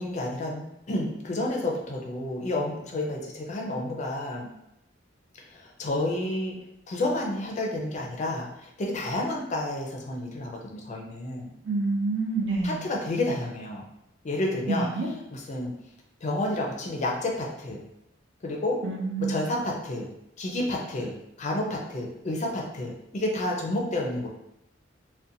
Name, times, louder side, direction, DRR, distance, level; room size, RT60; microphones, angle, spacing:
voice 1, 0.0-4.5 5.4-6.6 6.9-11.5 12.6-13.8 14.2-15.7 16.2-17.8 18.4-18.8 19.2-20.1 20.4-24.3, left 1 dB, 40° left, -1 dB, 0.4 m, -30 dB
voice 2, 11.6-12.8 14.7-15.1 18.8-19.4, right 3 dB, 70° right, -1 dB, 0.6 m, -27 dB
2.5 x 2.1 x 2.6 m, 0.82 s
head